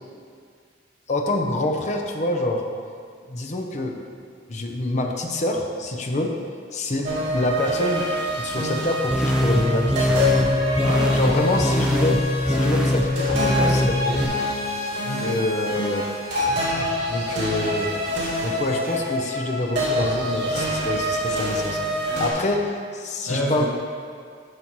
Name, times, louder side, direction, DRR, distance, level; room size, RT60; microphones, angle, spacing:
voice 1, 1.1-2.6 3.3-4.1 4.5-6.4 6.7-8.1 8.3-10.3 11.1-12.2 12.5-14.3 15.3-16.0 17.1-17.9 18.4-23.7, left 1 dB, 40° left, 2 dB, 0.7 m, -26 dB
sound 1, 7.0-22.3, left 1 dB, 70° right, 2.1 m, -26 dB
sound 2, 9.1-14.2, equal, 5° right, 0.4 m, -22 dB
voice 2, 10.8-11.4 15.0-15.4 23.3-23.7, equal, 85° left, -4 dB, 1.1 m, -27 dB
11.0 x 5.7 x 3.1 m, 2.2 s
head